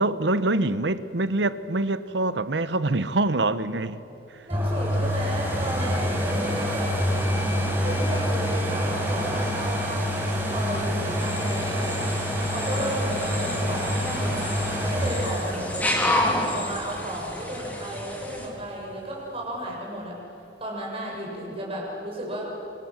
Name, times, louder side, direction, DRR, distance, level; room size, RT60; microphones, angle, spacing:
voice 1, 0.0-4.0, right 2 dB, 75° right, 1.0 m, -25 dB
voice 2, 4.4-6.9 7.8-10.1 10.5-12.0 12.5-14.5 14.8-20.2 20.6-22.5, equal, 35° right, 7.1 m, -33 dB
sound 1, 4.5-18.2 18.7-18.8, equal, 15° right, 5.0 m, -27 dB
sound 2, 11.2-18.5, left 1 dB, 10° left, 3.8 m, -30 dB
28.0 x 26.0 x 7.5 m
head